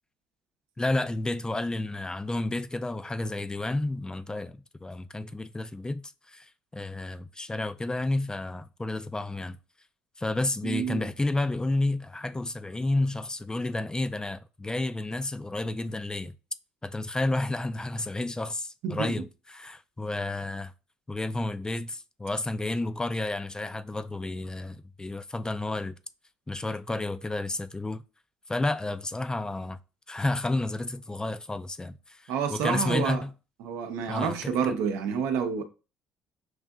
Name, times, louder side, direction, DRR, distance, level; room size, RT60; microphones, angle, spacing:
voice 1, 0.8-9.6 10.2-16.3 16.8-20.7 21.1-26.0 26.5-28.0 28.5-29.8 30.1-33.3 34.1-34.8, left 2 dB, 15° left, 0.4 m, -31 dB
voice 2, 10.6-11.1 18.8-19.1 32.3-33.2 33.6-35.6, right 6 dB, 80° right, 0.6 m, -29 dB
6.0 x 2.6 x 2.3 m
supercardioid pair, 65°, 5 cm